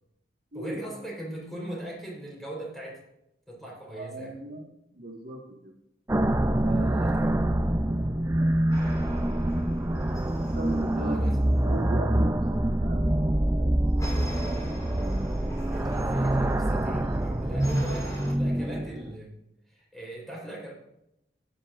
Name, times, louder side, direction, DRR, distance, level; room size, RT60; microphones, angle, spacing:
voice 1, 0.5-3.0 3.5-4.4 6.7-7.3 11.0-11.4 15.7-19.4 19.7-20.7, right 1 dB, ahead, -4 dB, 3.9 m, -40 dB
voice 2, 3.9-4.7 4.9-5.7 6.6-11.2 11.6-13.7 14.2-14.5, right 1 dB, 60° right, -1 dB, 1.6 m, -40 dB
sound 1, 6.1-19.2, right 1 dB, 15° right, 0.4 m, -25 dB
sound 2, 8.7-11.9 14.0-18.3, equal, 20° left, 3.5 m, -44 dB
15.5 x 9.9 x 2.5 m, 0.83 s
head